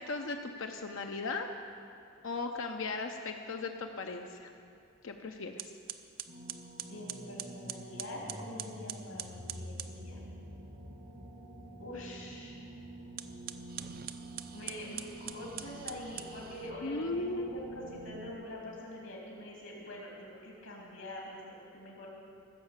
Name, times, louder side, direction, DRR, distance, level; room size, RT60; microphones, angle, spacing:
voice 1, 0.0-1.5 2.2-4.5 5.0-5.7 16.8-17.5, left 3 dB, 65° left, 4 dB, 0.6 m, -37 dB
sound 1, 5.0-5.2 5.6-10.0 13.1-16.7, right 11 dB, 45° right, 0.4 m, -44 dB
sound 2, 6.3-18.3, right 1 dB, 70° right, 2.0 m, -47 dB
voice 2, 6.8-10.2 11.8-12.6 14.5-22.1, left 1 dB, 80° left, -3 dB, 2.6 m, -45 dB
15.0 x 6.7 x 7.2 m, 2.5 s
head